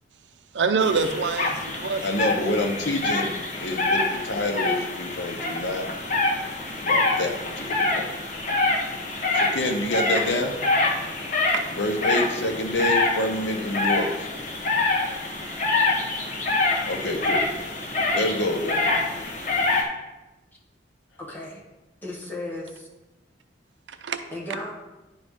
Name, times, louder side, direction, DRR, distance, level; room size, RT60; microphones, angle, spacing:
voice 1, 0.5-2.1 11.5-11.6 23.9-24.2, right 5 dB, 80° right, 9 dB, 0.6 m, -25 dB
sound 1, 0.8-19.8, left 3 dB, 45° left, 1.1 m, -26 dB
voice 2, 2.0-3.3 3.6-5.9 6.8-8.1 9.3-10.6 11.7-14.3 16.9-17.5 18.1-19.0, left 1 dB, 80° left, 4 dB, 0.9 m, -27 dB
voice 3, 21.2-21.6 22.0-22.9 24.3-24.7, left 1 dB, 10° left, -4 dB, 1.4 m, -35 dB
10.5 x 4.0 x 3.6 m, 1.0 s
head